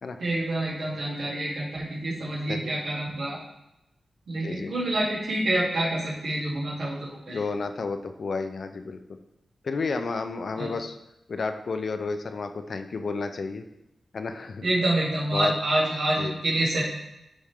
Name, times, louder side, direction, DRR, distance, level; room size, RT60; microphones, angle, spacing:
voice 1, 0.2-3.4 4.3-6.9 7.3-7.4 10.6-10.7 14.6-16.8, right 1 dB, 70° right, -6 dB, 2.8 m, -27 dB
voice 2, 4.4-4.7 7.3-9.0 9.6-11.0 11.3-13.6 14.1-14.6 15.3-15.5 16.2-16.4, left 4 dB, 50° left, 8 dB, 0.5 m, -31 dB
11.5 x 4.3 x 3.7 m, 0.88 s
wide cardioid pair, 150°, 0 cm